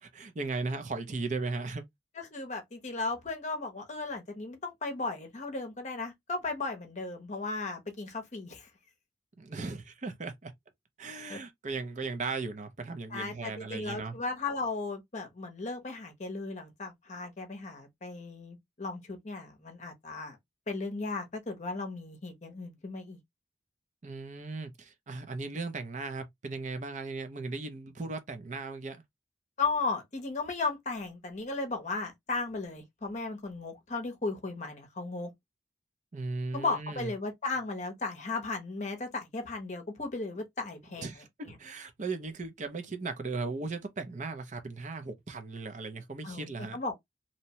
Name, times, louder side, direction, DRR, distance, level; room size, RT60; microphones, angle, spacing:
voice 1, 0.0-1.8 9.4-10.5 11.0-14.1 24.0-29.0 36.1-37.1 41.0-46.8, right 3 dB, 45° right, 0.5 m, -37 dB
voice 2, 2.2-8.7 11.3-11.4 13.1-20.4 20.7-23.2 29.6-35.3 36.5-41.6 46.2-46.9, left 3 dB, 40° left, 0.7 m, -36 dB
2.7 x 2.1 x 2.7 m
head